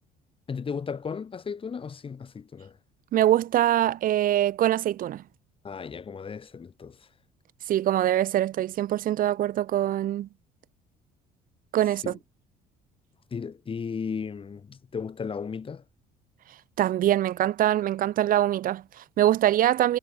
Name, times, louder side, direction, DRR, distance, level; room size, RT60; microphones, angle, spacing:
voice 1, 0.5-2.8 5.6-7.0 12.0-12.2 13.3-15.8, left 6 dB, 30° left, 2.9 m, -35 dB
voice 2, 3.1-5.2 7.7-10.3 11.7-12.2 16.8-20.0, right 12 dB, 55° right, 0.7 m, -23 dB
cardioid pair, 110°, 17 cm